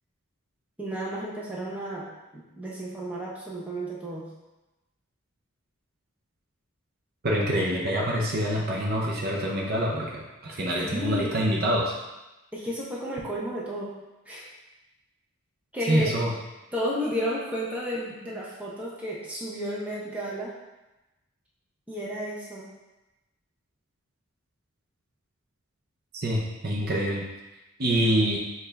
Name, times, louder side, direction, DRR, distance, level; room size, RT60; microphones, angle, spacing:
voice 1, 0.8-2.1 2.3-4.2 10.8-11.3 12.5-13.9 14.3-14.5 15.7-16.1 16.7-20.5 21.9-22.7, equal, 5° right, -6 dB, 0.7 m, -32 dB
voice 2, 7.2-11.9 15.9-16.3 26.1-27.2 27.8-28.4, equal, 45° right, -2 dB, 0.6 m, -26 dB
6.5 x 2.4 x 3.3 m, 1.0 s
head